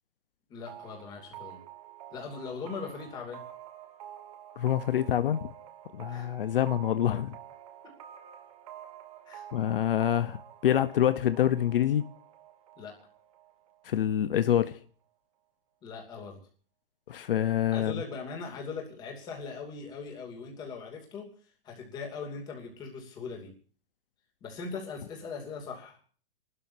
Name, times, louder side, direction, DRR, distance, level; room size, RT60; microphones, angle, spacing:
voice 1, 0.5-1.6 2.1-3.4 6.1-6.3 9.3-9.5 12.8-12.9 15.8-16.4 17.7-21.3 21.6-23.5 24.4-26.0, left 5 dB, 15° left, 2.8 m, -40 dB
sound 1, 0.7-14.2, right 11 dB, 35° right, 1.8 m, -48 dB
voice 2, 4.6-5.5 5.9-7.4 9.5-12.1 13.8-14.8 17.1-18.0, left 10 dB, 70° left, 1.0 m, -26 dB
30.0 x 12.5 x 2.8 m
hypercardioid pair, 180°, 29 cm